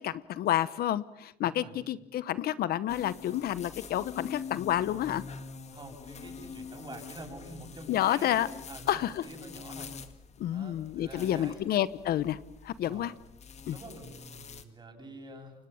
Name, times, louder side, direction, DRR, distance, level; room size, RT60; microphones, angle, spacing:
voice 1, 0.0-5.2 7.9-8.5 8.9-9.2 10.4-12.4 12.6-13.1 13.7-13.8, left 12 dB, 65° left, 16 dB, 1.0 m, -29 dB
voice 2, 1.4-2.0 5.7-8.4 8.7-9.9 10.5-11.6 12.8-13.1 13.7-15.5, right 2 dB, 25° right, 4 dB, 7.9 m, -47 dB
sound 1, 2.9-14.6, left 5 dB, 40° left, 2.1 m, -45 dB
29.0 x 24.5 x 7.1 m, 0.84 s
cardioid pair, 110°, 17 cm